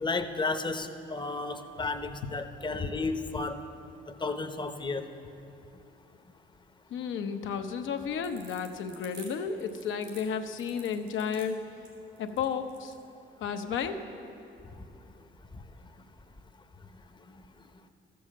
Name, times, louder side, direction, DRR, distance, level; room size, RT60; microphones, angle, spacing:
voice 1, 0.0-3.6 4.2-5.1, left 3 dB, 25° left, 8 dB, 0.8 m, -32 dB
voice 2, 6.9-11.6 12.2-12.9 13.4-14.0, left 6 dB, 75° left, 6 dB, 0.8 m, -32 dB
sound 1, 8.0-13.0, right 4 dB, 85° right, 3.1 m, -51 dB
13.0 x 7.0 x 7.5 m, 2.7 s
cardioid pair, 90°, 20 cm